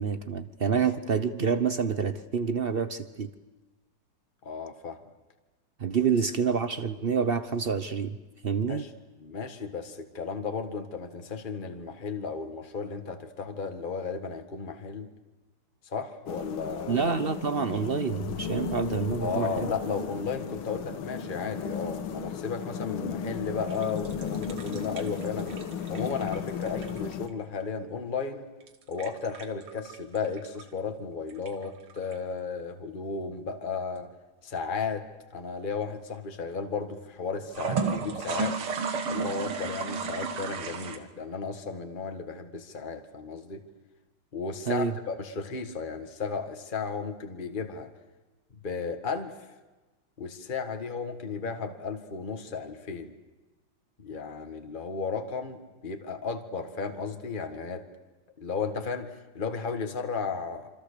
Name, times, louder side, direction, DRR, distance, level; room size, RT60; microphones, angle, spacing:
voice 1, 0.0-3.3 5.8-8.2 8.4-8.8 16.9-19.7 24.7-24.8 44.7-44.9, right 6 dB, 55° right, 11 dB, 0.6 m, -28 dB
voice 2, 4.4-5.0 8.7-8.9 9.2-15.1 15.8-17.0 19.2-25.6 25.9-28.5 28.9-34.1 34.4-35.1 35.3-38.6 39.1-43.6 44.3-47.9 48.5-49.5 50.2-53.1 54.0-57.9 58.4-60.7, left 5 dB, 25° left, 5 dB, 1.7 m, -34 dB
sound 1, 16.3-27.3, left 7 dB, 75° left, 1.9 m, -35 dB
sound 2, 23.7-27.3 28.6-30.6 31.3-32.1 37.5-41.0, right 5 dB, 90° right, 2.5 m, -33 dB
27.0 x 25.5 x 6.8 m, 1.2 s
omnidirectional pair, 2.3 m